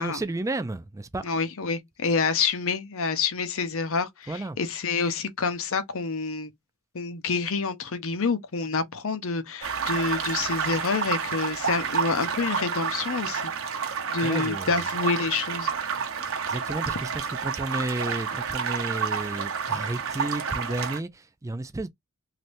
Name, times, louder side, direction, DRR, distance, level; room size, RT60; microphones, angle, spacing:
voice 1, 0.0-1.3 4.3-4.6 14.2-14.8 16.5-21.9, right 2 dB, 15° right, 0.4 m, -32 dB
voice 2, 1.2-6.5 6.9-13.5 14.1-15.7, left 4 dB, 70° left, 0.8 m, -28 dB
sound 1, 9.6-21.0, right 6 dB, 65° right, 0.9 m, -30 dB
3.3 x 2.7 x 2.6 m
head